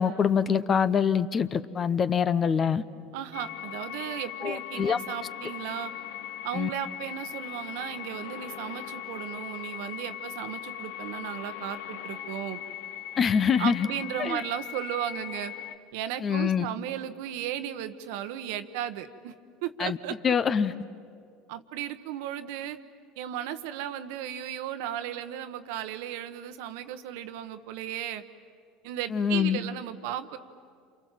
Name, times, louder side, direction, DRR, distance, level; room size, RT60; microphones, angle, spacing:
voice 1, 0.0-2.8 4.4-5.0 6.5-6.7 13.2-13.9 14.2-14.4 16.2-16.7 19.8-20.0 20.2-20.7 29.1-29.6, left 7 dB, 35° left, 14 dB, 1.0 m, -25 dB
voice 2, 3.1-5.9 6.4-12.6 13.6-15.5 15.9-19.3 19.6-20.1 21.5-22.8 23.2-28.2 28.8-30.4, right 11 dB, 70° right, 10 dB, 1.2 m, -35 dB
sound 1, 3.3-15.8, left 11 dB, 80° left, 1.3 m, -39 dB
28.5 x 27.5 x 7.6 m, 2.2 s
hypercardioid pair, 85°, 0 cm